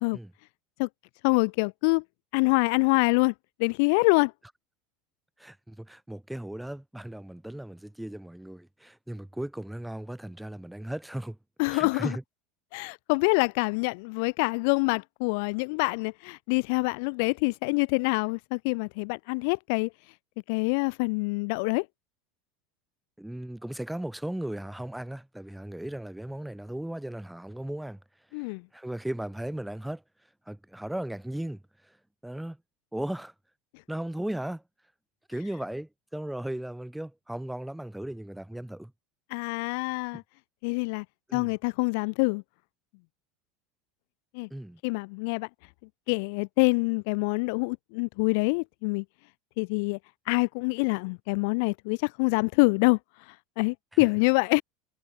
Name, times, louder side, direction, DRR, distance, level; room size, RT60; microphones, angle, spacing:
voice 1, 1.2-2.0 2.3-3.3 3.6-4.3 11.6-12.2 12.7-19.9 20.5-21.9 28.3-28.6 39.3-40.2 40.6-41.0 41.3-42.4 44.3-44.5 44.8-45.5 46.1-49.0 49.6-50.0 50.3-53.0 53.6-54.6, left 31 dB, 60° left, 0.8 m, -25 dB
voice 2, 5.4-11.4 11.7-12.2 23.2-28.0 28.7-30.0 30.5-31.9 32.2-32.6 32.9-33.3 33.9-34.6 35.3-38.9 41.3-41.5 44.5-44.8 53.9-54.0, right 1 dB, 5° right, 2.7 m, -36 dB
hypercardioid pair, 80°, 0 cm